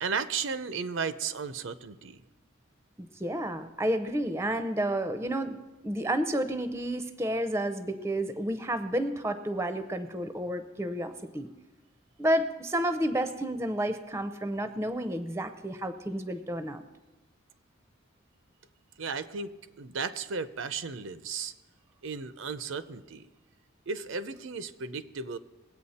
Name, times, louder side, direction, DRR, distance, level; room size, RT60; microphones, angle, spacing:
voice 1, 0.0-2.2 19.0-21.5 22.0-23.3 23.9-25.4, right 5 dB, 75° right, 13 dB, 0.6 m, -34 dB
voice 2, 3.0-5.6 5.8-11.5 12.2-16.8, right 1 dB, 15° right, 10 dB, 0.6 m, -30 dB
20.5 x 8.3 x 4.2 m, 1.1 s
head